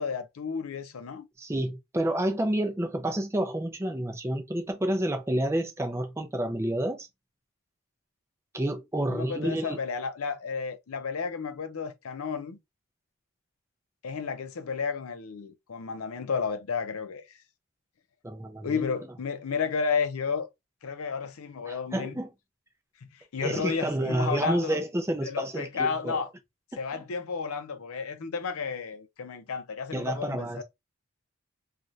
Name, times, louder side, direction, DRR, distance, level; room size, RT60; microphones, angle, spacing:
voice 1, 0.0-1.3 9.1-12.6 14.0-17.2 18.6-20.5 20.8-22.2 23.0-24.8 25.2-26.3 26.8-30.6, left 5 dB, 80° left, 0.5 m, -32 dB
voice 2, 1.4-7.1 8.5-9.8 18.2-18.8 21.7-22.3 23.4-26.2 26.9-27.0 29.9-30.6, right 1 dB, 10° right, 0.4 m, -29 dB
3.1 x 2.4 x 2.6 m
head